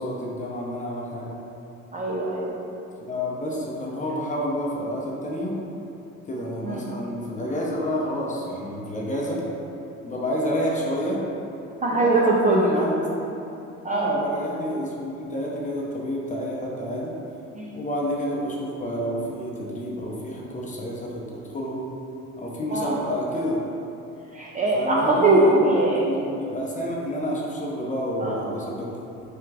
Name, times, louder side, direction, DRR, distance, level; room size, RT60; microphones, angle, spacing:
voice 1, 0.0-1.3 3.0-5.5 6.3-9.4 10.0-11.2 11.9-13.3 13.9-17.1 17.7-21.8 22.4-23.6 24.7-28.9, equal, 25° left, -4 dB, 0.7 m, -29 dB
voice 2, 1.9-2.5 6.6-6.9 11.8-12.9 13.8-14.1 17.5-17.8 22.7-23.0 24.3-26.0 28.2-28.6, right 2 dB, 25° right, -4 dB, 0.4 m, -21 dB
3.4 x 2.3 x 3.3 m, 2.8 s
supercardioid pair, 75°, 33 cm